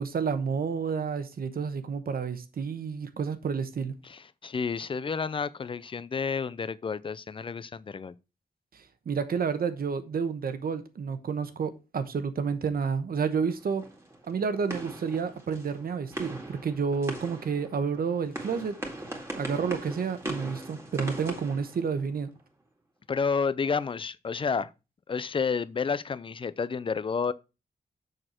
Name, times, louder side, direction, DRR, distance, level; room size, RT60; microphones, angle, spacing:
voice 1, 0.0-3.9 8.7-13.8 14.3-18.8 19.4-22.3, right 6 dB, 70° right, 1.0 m, -30 dB
voice 2, 4.0-8.1 23.1-24.7 25.1-27.3, left 5 dB, 35° left, 0.5 m, -30 dB
sound 1, 13.3-22.4, right 1 dB, 15° right, 2.0 m, -40 dB
6.6 x 6.5 x 4.3 m
wide cardioid pair, 145°, 16 cm